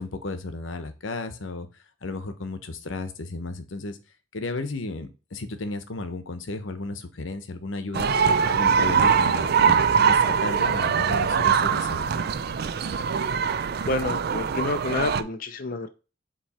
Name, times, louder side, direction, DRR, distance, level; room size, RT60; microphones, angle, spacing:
voice 1, 0.0-1.7 2.0-4.0 4.3-8.1 8.5-12.1, left 3 dB, 85° left, 9 dB, 0.9 m, -34 dB
sound 1, 7.9-15.2, right 6 dB, 55° right, 0.4 m, -22 dB
voice 2, 13.9-15.9, left 3 dB, 45° left, 8 dB, 0.5 m, -28 dB
7.5 x 3.0 x 4.2 m, 0.32 s
head